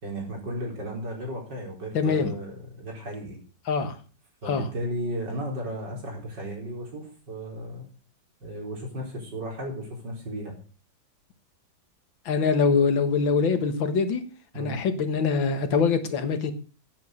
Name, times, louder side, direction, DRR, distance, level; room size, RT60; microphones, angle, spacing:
voice 1, 0.0-3.4 4.4-7.9 8.4-10.5 14.5-14.8, equal, 65° right, 0 dB, 4.9 m, -34 dB
voice 2, 1.9-2.3 3.7-4.0 4.5-4.7 12.3-14.2 14.6-16.5, left 5 dB, 90° left, 9 dB, 2.3 m, -24 dB
10.5 x 9.7 x 6.6 m, 0.38 s
omnidirectional pair, 2.1 m